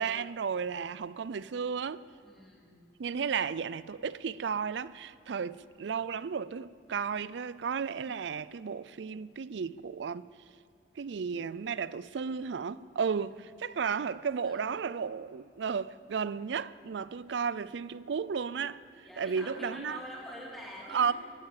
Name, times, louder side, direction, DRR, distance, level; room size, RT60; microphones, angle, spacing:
voice 1, 0.0-2.0 3.0-10.3 11.0-18.8 19.2-20.0 20.9-21.1, right 6 dB, 80° right, 0.4 m, -33 dB
voice 2, 2.2-2.8 3.3-3.4 14.4-14.8 19.0-21.1, equal, ahead, 2.5 m, -46 dB
17.0 x 11.5 x 7.3 m
head